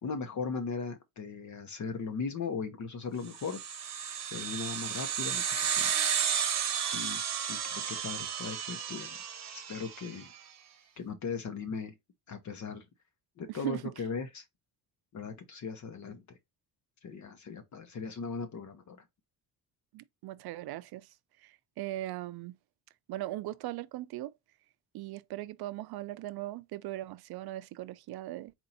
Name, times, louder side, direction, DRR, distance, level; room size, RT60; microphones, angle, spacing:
voice 1, 0.0-3.6 4.3-5.9 6.9-7.2 7.5-9.2 9.7-10.3 11.0-11.9 12.3-12.8 13.4-14.4 15.1-16.2 17.0-19.0, left 5 dB, 45° left, 0.9 m, -38 dB
sound 1, 3.3-10.2, right 8 dB, 40° right, 0.9 m, -33 dB
voice 2, 13.5-13.8 19.9-22.6 23.1-24.3 24.9-28.5, right 15 dB, 70° right, 0.5 m, -39 dB
4.4 x 2.7 x 3.9 m
cardioid pair, 110°, 40 cm